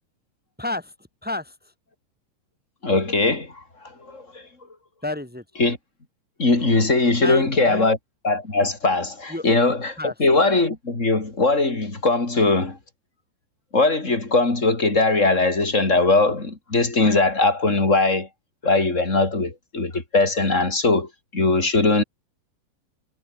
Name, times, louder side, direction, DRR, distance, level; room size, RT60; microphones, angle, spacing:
voice 1, 0.6-0.9 1.2-1.5 5.0-5.4 7.2-7.9 9.3-9.4 10.0-10.1, left 2 dB, ahead, 5.8 m, -30 dB
voice 2, 2.8-3.6 4.0-4.4 5.6-5.8 6.4-8.0 8.2-12.8 13.7-18.3 18.6-22.0, left 3 dB, 15° left, 3.6 m, -20 dB
omnidirectional pair, 5.2 m